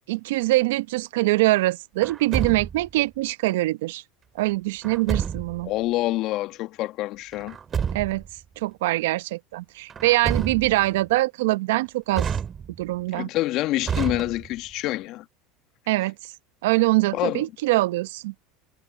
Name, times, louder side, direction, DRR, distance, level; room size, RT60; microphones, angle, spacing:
voice 1, 0.1-4.0 4.4-5.7 7.9-8.2 8.6-12.3 12.8-13.3 15.9-16.1 16.6-18.3, right 19 dB, 75° right, 1.1 m, -23 dB
Truck, 2.0-3.0 4.8-5.7 7.3-8.3 9.9-10.9 12.1-13.0 13.8-14.7, right 7 dB, 30° right, 2.1 m, -29 dB
voice 2, 5.6-7.6 13.1-15.2 17.1-17.4, left 17 dB, 55° left, 1.5 m, -27 dB
hypercardioid pair, 90°, 0 cm